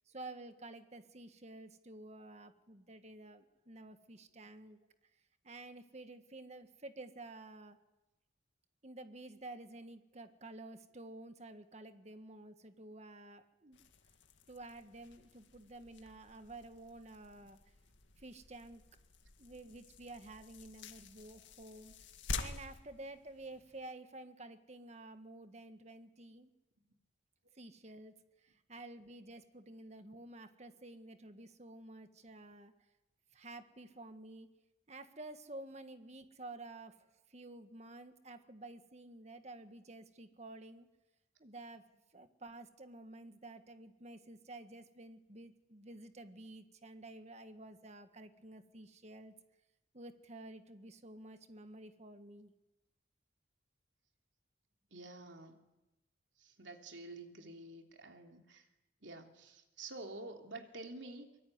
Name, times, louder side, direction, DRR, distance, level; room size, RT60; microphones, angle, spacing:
voice 1, 0.1-4.8 5.4-7.8 8.8-13.8 14.5-17.6 18.2-18.8 19.4-21.9 22.4-26.5 27.5-28.2 28.4-32.7 33.3-34.5 34.9-36.9 37.3-40.9 41.4-41.8 42.1-49.3 49.9-52.5, right 2 dB, 35° right, 8 dB, 1.6 m, -51 dB
sound 1, 13.7-23.8, left 4 dB, 85° left, 2.1 m, -48 dB
voice 2, 54.9-55.6 56.4-58.7 59.0-61.3, right 2 dB, 75° right, 4 dB, 3.2 m, -49 dB
24.0 x 23.0 x 9.6 m, 0.99 s
head